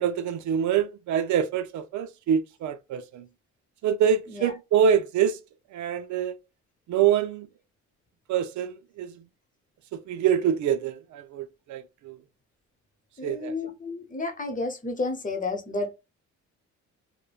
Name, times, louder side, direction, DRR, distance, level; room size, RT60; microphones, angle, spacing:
voice 1, 0.0-3.3 3.8-5.4 5.7-6.4 6.9-7.5 8.3-9.3 9.9-12.2 13.2-13.5, right 8 dB, 70° right, 0.5 m, -25 dB
voice 2, 13.2-16.0, left 3 dB, 25° left, 0.8 m, -31 dB
3.1 x 2.1 x 2.3 m
cardioid pair, 90°, 30 cm